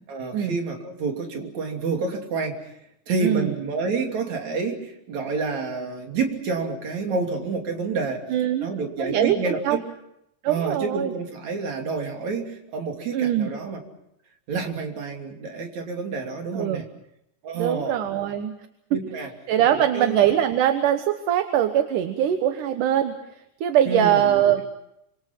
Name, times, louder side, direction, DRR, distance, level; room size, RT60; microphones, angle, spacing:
voice 1, 0.1-2.7 3.1-8.2 8.6-9.8 10.5-13.8 14.5-16.8 17.4-18.0 18.9-19.3 19.7-20.2 23.9-24.4, right 4 dB, 60° right, 2 dB, 4.3 m, -29 dB
voice 2, 3.2-3.5 8.3-8.7 9.0-9.8 10.4-11.2 13.1-13.5 16.5-16.8 17.5-18.5 18.9-19.0 19.5-23.2 23.6-24.6, right 10 dB, 80° right, 7 dB, 2.7 m, -22 dB
27.0 x 26.5 x 5.8 m, 0.78 s
omnidirectional pair, 3.7 m